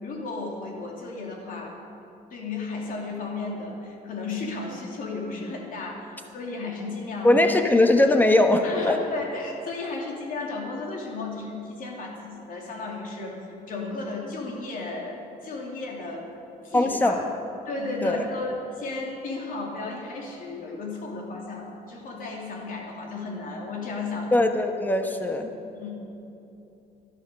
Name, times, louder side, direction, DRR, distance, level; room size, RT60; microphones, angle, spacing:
voice 1, 0.0-1.8 2.3-7.4 8.6-16.3 16.6-17.2 17.6-24.4 25.7-26.0, left 3 dB, 55° left, -1 dB, 3.1 m, -34 dB
voice 2, 7.2-9.0 16.7-17.2 18.0-18.3 24.3-25.5, left 1 dB, 10° left, 5 dB, 1.2 m, -20 dB
12.0 x 12.0 x 6.8 m, 2.9 s
cardioid pair, 110°, 17 cm